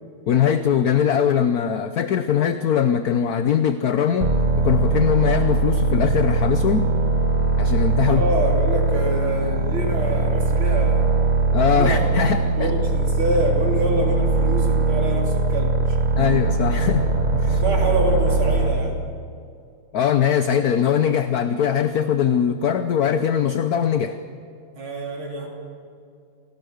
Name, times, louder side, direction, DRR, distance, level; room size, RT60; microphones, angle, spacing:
voice 1, 0.3-4.3 4.6-6.9 7.6-8.2 11.5-12.7 16.2-17.0 17.3-17.6 19.9-24.2, left 8 dB, 60° left, 10 dB, 1.1 m, -21 dB
sound 1, 4.2-18.9, right 3 dB, 25° right, 1.2 m, -21 dB
voice 2, 8.0-11.2 11.6-12.2 12.6-16.0 17.5-19.0 24.8-25.5, right 1 dB, 80° right, 0 dB, 4.2 m, -26 dB
27.5 x 17.5 x 6.5 m, 2.5 s
omnidirectional pair, 2.3 m